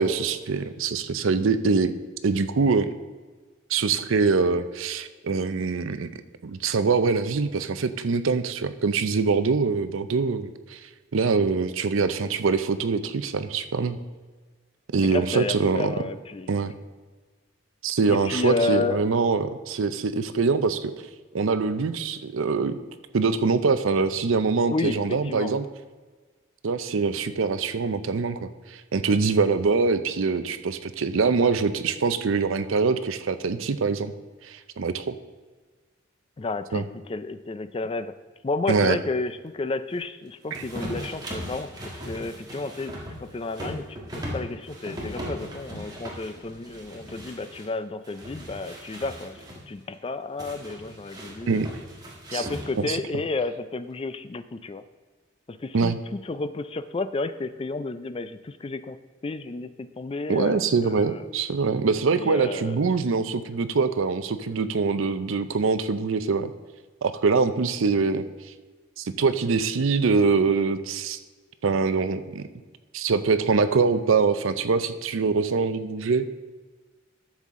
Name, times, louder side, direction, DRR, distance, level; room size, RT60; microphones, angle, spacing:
voice 1, 0.0-1.9 2.2-3.0 3.7-6.1 6.4-10.8 11.1-14.0 14.9-16.0 16.5-16.7 17.8-20.9 21.3-22.8 23.1-25.7 26.6-34.1 34.4-35.2 36.7-36.8 38.7-39.0 40.5-40.6 51.5-51.7 52.3-52.5 52.8-53.0 55.7-56.0 60.3-66.5 67.0-68.3 69.0-71.2 71.6-72.5 72.9-76.3, right 4 dB, 70° right, 11 dB, 0.5 m, -24 dB
voice 2, 15.0-16.6 18.1-19.0 24.7-25.6 36.4-38.1 38.4-41.7 42.1-43.9 44.3-49.4 49.7-51.6 52.3-54.8 55.5-59.0 59.2-61.2 62.1-62.8, left 3 dB, 25° left, 12 dB, 0.3 m, -31 dB
sound 1, 40.5-47.7 48.0-49.6 50.4-53.0, equal, 20° right, 1.6 m, -38 dB
11.5 x 7.4 x 3.7 m, 1.4 s
head